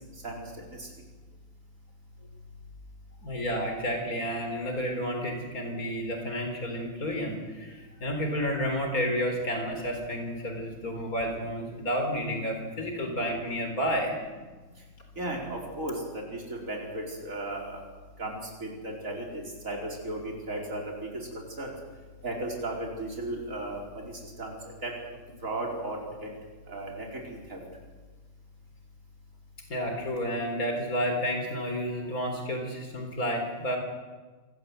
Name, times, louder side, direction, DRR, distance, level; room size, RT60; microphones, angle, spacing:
voice 1, 0.2-0.9 15.2-17.8 18.2-21.7 22.2-24.9 25.4-26.3 26.7-27.6, right 1 dB, 65° right, -1 dB, 5.0 m, -36 dB
voice 2, 3.2-14.1 29.7-33.8, equal, 85° left, 3 dB, 4.4 m, -31 dB
26.0 x 19.0 x 8.0 m, 1.3 s
omnidirectional pair, 1.5 m